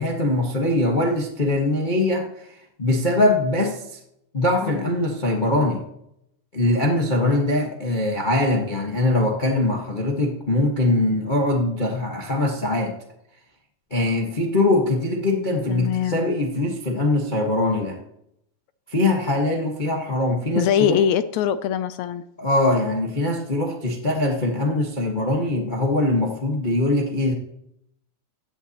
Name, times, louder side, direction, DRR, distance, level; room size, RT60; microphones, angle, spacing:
voice 1, 0.0-2.5 2.8-4.0 4.3-5.8 6.5-13.0 13.9-18.0 18.9-21.0 22.4-27.3, left 2 dB, 60° left, 0 dB, 0.5 m, -22 dB
voice 2, 15.7-16.2 20.6-22.2, left 9 dB, 80° left, 12 dB, 1.9 m, -22 dB
16.5 x 11.5 x 2.9 m, 0.77 s
omnidirectional pair, 3.4 m